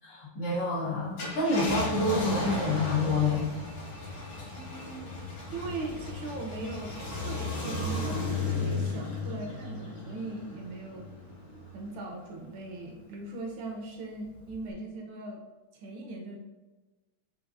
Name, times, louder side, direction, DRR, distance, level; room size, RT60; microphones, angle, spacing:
voice 1, 0.0-3.5, left 2 dB, 85° left, -9 dB, 2.6 m, -28 dB
Car, 1.0-11.9 12.4-12.5 14.5-14.7, left 2 dB, 65° left, 2.2 m, -35 dB
voice 2, 4.6-5.2 5.5-6.9 7.2-11.0 11.7-15.4 15.7-16.4, right 2 dB, 75° right, 1 dB, 1.2 m, -39 dB
5.7 x 2.6 x 2.5 m, 1.2 s
omnidirectional pair, 2.4 m